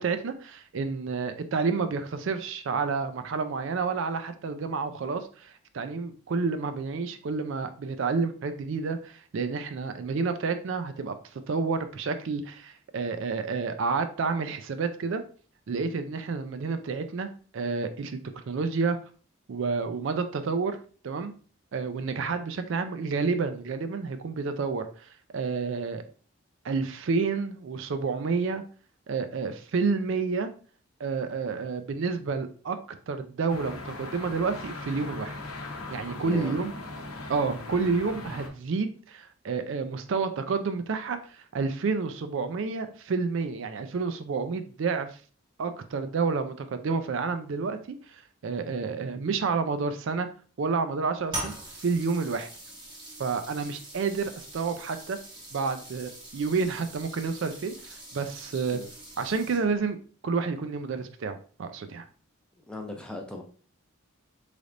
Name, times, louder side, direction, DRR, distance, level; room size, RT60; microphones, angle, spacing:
voice 1, 0.0-15.2 15.7-18.2 18.5-19.0 19.5-20.8 21.0-21.3 21.7-26.0 26.6-28.6 29.1-30.5 31.0-32.8 33.1-35.4 35.9-36.7 37.3-45.2 45.6-50.3 50.6-51.5 51.8-52.5 53.2-55.2 55.5-58.8 59.2-60.0 60.2-62.1, right 4 dB, 60° right, 9 dB, 0.4 m, -29 dB
sound 1, 33.5-38.5, left 2 dB, 85° left, 0.8 m, -39 dB
voice 2, 36.2-36.6 58.7-58.9 62.7-63.4, left 1 dB, 5° left, 2 dB, 0.4 m, -38 dB
sound 2, 51.3-59.9, right 1 dB, 20° right, 0.8 m, -42 dB
4.0 x 3.3 x 2.5 m, 0.40 s
head